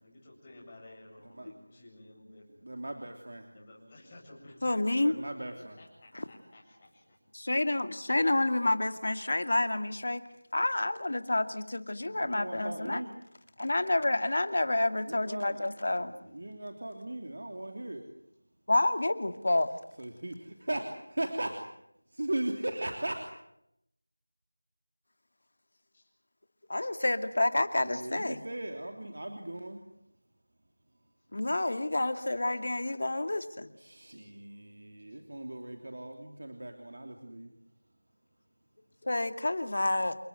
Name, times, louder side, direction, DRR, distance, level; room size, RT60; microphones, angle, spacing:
voice 1, 0.0-2.8 3.5-5.2 5.5-7.2 13.9-14.1 15.9-16.4 25.9-26.1 34.2-34.3 35.1-35.2, left 1 dB, 20° left, -2 dB, 7.8 m, -54 dB
voice 2, 2.6-3.5 5.0-5.8 12.1-13.1 15.0-15.7 16.0-18.1 20.0-21.7 22.1-23.2 27.8-29.8 33.8-37.5, right 1 dB, 55° right, 4 dB, 3.2 m, -38 dB
voice 3, 4.6-5.1 6.1-6.3 7.3-10.2 10.5-13.0 13.6-16.1 18.7-19.7 26.7-28.4 31.3-33.7 39.0-40.2, left 2 dB, 50° left, 10 dB, 2.2 m, -29 dB
29.0 x 18.5 x 9.3 m, 0.79 s
figure-of-eight pair, 170°, 0 cm